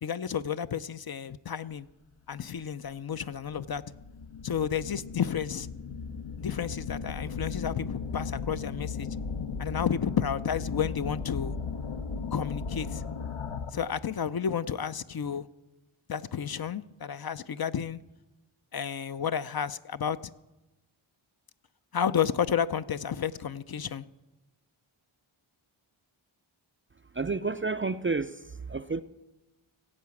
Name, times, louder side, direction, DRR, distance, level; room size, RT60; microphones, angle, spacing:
voice 1, 0.0-1.9 2.3-3.8 4.4-5.7 6.4-9.1 9.6-11.5 12.3-13.0 13.7-15.5 16.1-18.0 18.7-20.2 21.9-24.0, left 8 dB, 50° left, 0.5 m, -31 dB
sound 1, 2.6-2.7 3.3-14.0, left 5 dB, 80° left, 0.9 m, -36 dB
voice 2, 27.2-28.3 28.7-29.0, right 4 dB, 30° right, 0.4 m, -30 dB
16.0 x 8.4 x 7.1 m
wide cardioid pair, 90°, 49 cm